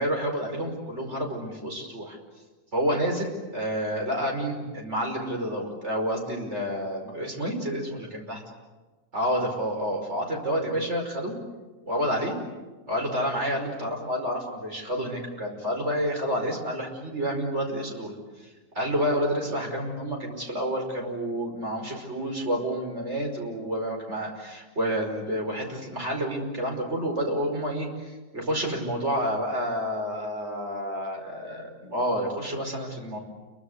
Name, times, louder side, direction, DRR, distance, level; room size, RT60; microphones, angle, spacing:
voice 1, 0.0-2.2 2.7-8.4 9.1-11.4 11.9-12.4 12.9-18.1 18.8-33.2, equal, 45° right, 2 dB, 5.6 m, -29 dB
29.5 x 23.5 x 8.2 m, 1.3 s
omnidirectional pair, 1.7 m